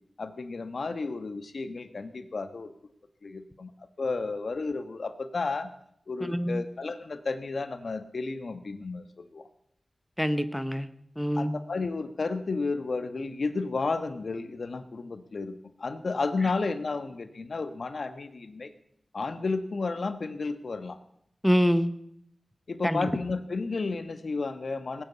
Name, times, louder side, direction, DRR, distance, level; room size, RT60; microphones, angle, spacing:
voice 1, 0.2-2.7 3.2-3.7 4.0-5.7 6.1-9.5 11.4-18.7 19.1-21.0 22.7-25.0, left 3 dB, 70° left, 9 dB, 1.3 m, -32 dB
voice 2, 6.2-6.6 10.2-10.9 11.2-11.5 21.4-21.9 22.8-23.1, equal, ahead, 10 dB, 1.1 m, -25 dB
19.0 x 9.0 x 8.4 m, 0.71 s
wide cardioid pair, 70°, 0 cm